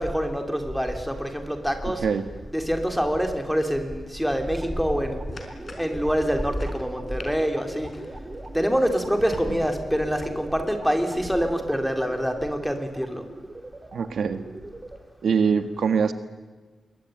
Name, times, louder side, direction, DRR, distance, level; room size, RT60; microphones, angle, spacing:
voice 1, 0.0-2.0 2.5-5.2 5.8-7.9 8.5-13.2, equal, ahead, 5 dB, 3.3 m, -25 dB
sound 1, 4.3-9.5, left 3 dB, 35° left, 4.5 m, -45 dB
sound 2, 4.5-15.0, right 2 dB, 25° right, 3.1 m, -40 dB
voice 2, 13.9-14.4 15.2-16.1, right 6 dB, 75° right, 9 dB, 1.6 m, -23 dB
26.5 x 22.5 x 9.3 m, 1.3 s
wide cardioid pair, 140°, 0 cm